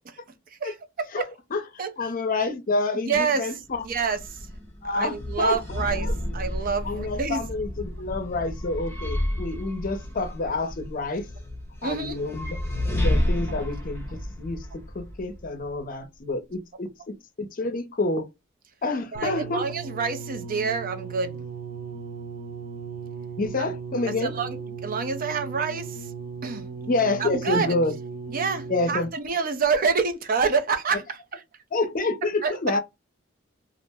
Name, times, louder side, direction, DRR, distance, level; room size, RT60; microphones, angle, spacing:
voice 1, 0.6-1.2 1.8-1.9 3.1-3.5 3.8-4.4 4.8-6.1 6.3-7.4 11.8-12.2 19.1-21.4 23.6-23.7 24.2-24.6 24.8-26.0 26.4-26.6 27.2-27.7 28.3-31.4 32.4-32.5, right 5 dB, 45° right, 0.5 m, -27 dB
voice 2, 1.1-1.7 2.0-3.8 4.8-6.1 6.8-11.3 11.8-12.6 12.8-18.3 18.8-19.6 23.4-24.3 26.9-27.9 28.7-29.1 31.7-32.8, left 3 dB, 45° left, 0.5 m, -28 dB
sound 1, 3.6-15.8, left 1 dB, 15° left, 0.7 m, -31 dB
sound 2, 19.1-29.3 30.1-30.2, right 5 dB, 80° right, 0.7 m, -37 dB
2.4 x 2.0 x 3.3 m
head